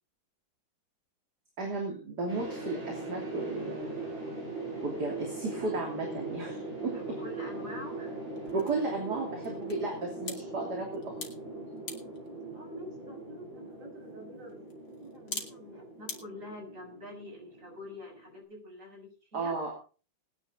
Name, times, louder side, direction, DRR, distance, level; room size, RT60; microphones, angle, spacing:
voice 1, 1.6-4.2 4.8-7.2 8.5-11.2 19.3-19.7, right 3 dB, 55° right, 0 dB, 3.5 m, -34 dB
sound 1, 2.3-18.4, right 2 dB, 70° right, 7.8 m, -40 dB
sound 2, 6.8-16.2, left 4 dB, 80° left, 3.2 m, -47 dB
voice 2, 6.8-8.2 12.5-19.6, left 1 dB, 40° right, 2 dB, 6.6 m, -46 dB
20.0 x 10.0 x 3.9 m, 0.37 s
omnidirectional pair, 2.1 m